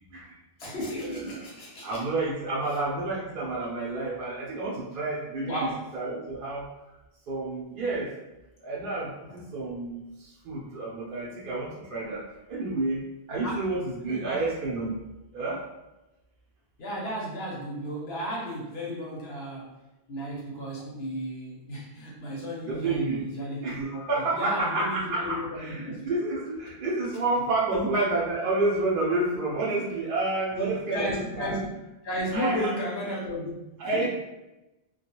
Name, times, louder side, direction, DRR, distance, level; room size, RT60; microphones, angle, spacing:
voice 1, 0.6-2.0 5.4-5.9 13.4-13.7 14.1-14.5 16.8-19.7 20.1-26.1 27.7-27.9 30.5-31.7 32.0-34.1, equal, 80° left, -3 dB, 1.0 m, -33 dB
voice 2, 1.8-6.7 7.3-8.1 8.6-13.0 13.3-15.0 15.3-15.6 22.7-23.2 23.6-31.5 32.3-32.7 33.8-34.1, right 2 dB, 60° right, -5 dB, 0.7 m, -30 dB
2.3 x 2.3 x 2.8 m, 1.0 s
omnidirectional pair, 1.0 m